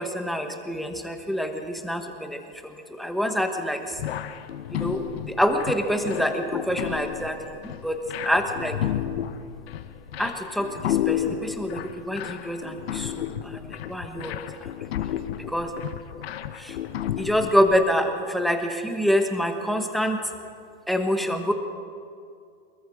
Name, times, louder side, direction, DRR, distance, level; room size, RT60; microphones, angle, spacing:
voice 1, 0.0-4.0 4.7-8.8 10.2-14.4 15.4-15.7 16.5-16.8 17.2-20.2 20.9-21.5, equal, ahead, 4 dB, 1.1 m, -26 dB
sound 1, 4.0-17.8, left 11 dB, 80° left, 1.2 m, -32 dB
24.5 x 22.0 x 5.0 m, 2.3 s
supercardioid pair, 165°, 30 cm